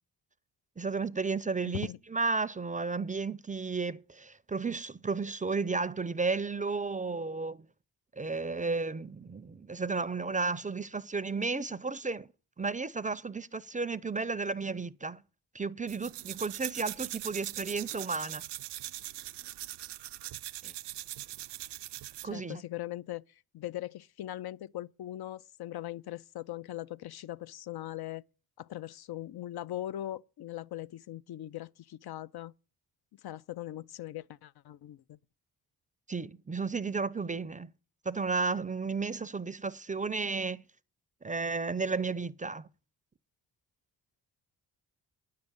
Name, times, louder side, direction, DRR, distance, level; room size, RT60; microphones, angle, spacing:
voice 1, 0.8-7.7 8.1-12.3 12.6-15.2 15.5-18.4 20.6-20.7 22.2-22.6 36.1-37.7 38.0-40.6 41.2-42.7, right 4 dB, 20° right, 0.5 m, -33 dB
voice 2, 1.7-2.0 22.3-23.2 23.5-28.2 28.6-32.5 33.2-35.2, left 14 dB, 65° left, 0.5 m, -40 dB
sound 1, 15.9-22.3, right 14 dB, 80° right, 0.5 m, -41 dB
9.5 x 6.7 x 8.7 m
cardioid pair, 70°, 41 cm